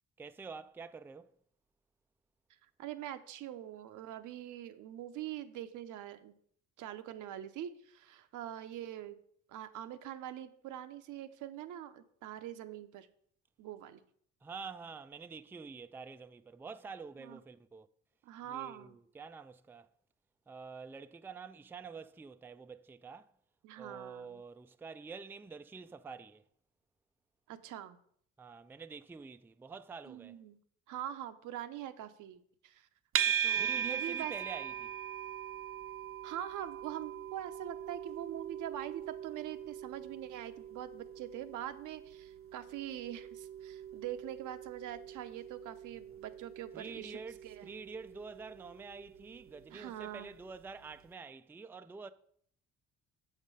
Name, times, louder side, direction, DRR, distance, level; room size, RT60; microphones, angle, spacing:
voice 1, 0.2-1.3 14.4-17.9 18.5-19.9 20.5-23.3 23.8-26.5 28.4-30.4 33.5-34.9 46.7-47.4 47.6-52.1, right 5 dB, 10° right, 0.3 m, -47 dB
voice 2, 2.8-6.3 6.8-9.2 9.5-13.1 13.6-14.0 17.2-17.4 18.2-19.0 23.6-24.4 27.5-28.0 30.1-30.6 30.9-32.9 33.3-34.3 36.2-47.8 49.7-50.3, right 11 dB, 85° right, 0.7 m, -44 dB
sound 1, 33.1-50.3, right 9 dB, 45° right, 0.6 m, -40 dB
7.3 x 5.1 x 5.4 m
cardioid pair, 90°, 30 cm